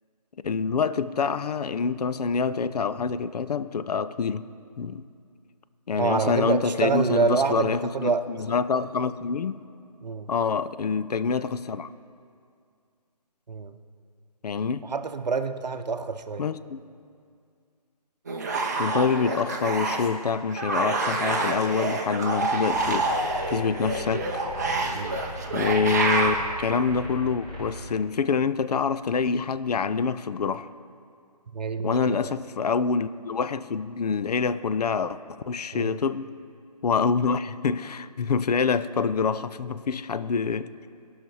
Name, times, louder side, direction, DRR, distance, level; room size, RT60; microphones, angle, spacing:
voice 1, 0.4-4.5 4.8-5.0 5.9-9.6 10.3-11.9 14.4-14.8 16.4-16.8 18.8-24.3 25.5-30.7 31.8-35.2 35.5-36.3 36.8-40.7, left 5 dB, 70° left, 0.4 m, -26 dB
voice 2, 6.0-8.2 10.0-10.3 13.5-13.8 14.8-16.5 24.9-25.2 31.5-32.3 35.7-36.0, right 4 dB, 85° right, 0.7 m, -27 dB
sound 1, 18.3-20.2 20.5-26.4, right 3 dB, 25° right, 0.6 m, -27 dB
sound 2, 22.6-27.9, equal, 15° left, 1.4 m, -39 dB
16.5 x 5.8 x 4.6 m
hypercardioid pair, 165°, 21 cm